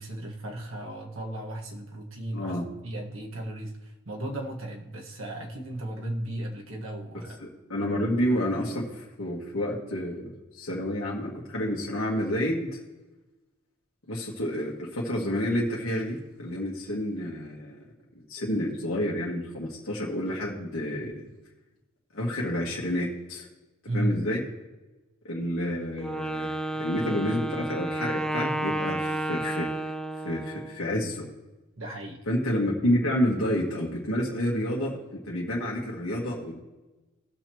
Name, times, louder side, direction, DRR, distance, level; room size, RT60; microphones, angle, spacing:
voice 1, 0.0-2.6 2.8-7.4 23.9-24.2 31.8-32.3, right 1 dB, 65° right, 0 dB, 1.8 m, -35 dB
voice 2, 2.3-2.7 7.4-12.7 14.1-17.9 18.2-21.2 22.1-23.5 23.9-24.4 25.2-29.9 30.2-31.3 32.3-36.6, equal, 70° left, -4 dB, 1.8 m, -29 dB
Wind instrument woodwind instrument, 26.0-30.8, right 1 dB, 5° left, 0.5 m, -31 dB
19.0 x 6.7 x 3.1 m, 1.1 s
head